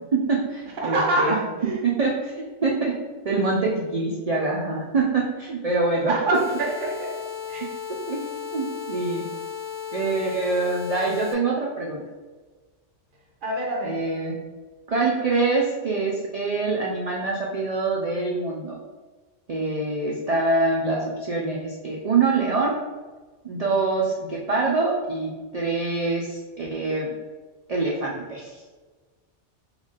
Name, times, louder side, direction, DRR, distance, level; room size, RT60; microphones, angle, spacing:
voice 1, 0.1-1.4 2.0-3.0 3.2-6.1 8.1-8.2 8.5-9.2 9.9-12.0 13.8-14.3 14.9-18.7 19.5-22.7 23.4-27.1 27.7-28.5, right 3 dB, 70° right, -3 dB, 0.3 m, -25 dB
voice 2, 0.8-1.8 6.1-7.2 7.5-7.7 13.4-14.0, right 1 dB, 50° right, 0 dB, 0.8 m, -25 dB
sound 1, 6.3-11.3, left 8 dB, 65° left, 0.3 m, -35 dB
3.0 x 2.4 x 3.9 m, 1.3 s
omnidirectional pair, 1.2 m